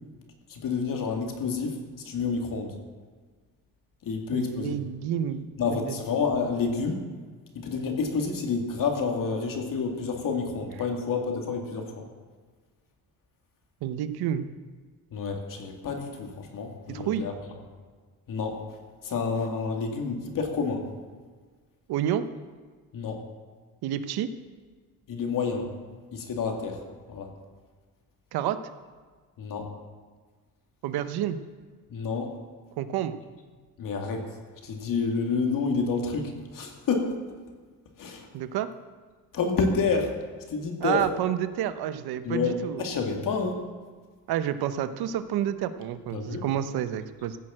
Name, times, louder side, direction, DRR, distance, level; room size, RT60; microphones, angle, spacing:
voice 1, 0.5-1.8 2.0-2.8 4.0-4.8 5.6-7.0 7.5-12.1 15.1-17.3 18.3-18.6 19.0-20.9 22.9-23.2 25.1-25.7 26.1-26.8 27.1-27.3 29.4-29.7 31.9-32.3 33.8-34.4 34.6-37.1 38.0-38.3 39.3-40.2 40.5-41.1 42.2-43.6 46.1-46.4, left 4 dB, 60° left, 2 dB, 2.4 m, -29 dB
voice 2, 4.3-6.0 13.8-14.5 16.9-17.2 21.9-22.3 23.8-24.3 28.3-28.6 30.8-31.4 32.8-33.2 38.3-38.7 40.8-42.8 44.3-47.4, right 10 dB, 85° right, 11 dB, 0.9 m, -29 dB
15.5 x 6.6 x 7.5 m, 1.5 s
cardioid pair, 105°, 37 cm